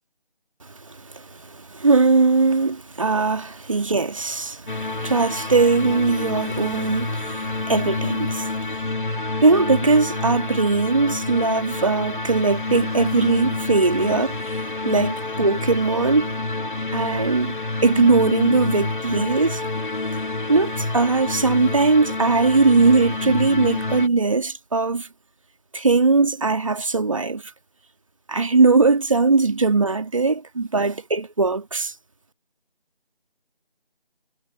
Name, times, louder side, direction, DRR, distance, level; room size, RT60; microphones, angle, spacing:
voice 1, 1.0-8.8 9.4-16.3 16.9-17.6 17.8-19.6 20.5-25.1 25.7-27.4 28.3-31.9, right 3 dB, 35° right, 2.2 m, -20 dB
sound 1, 4.7-24.1, left 2 dB, 55° left, 2.4 m, -28 dB
figure-of-eight pair, 165°, 30 cm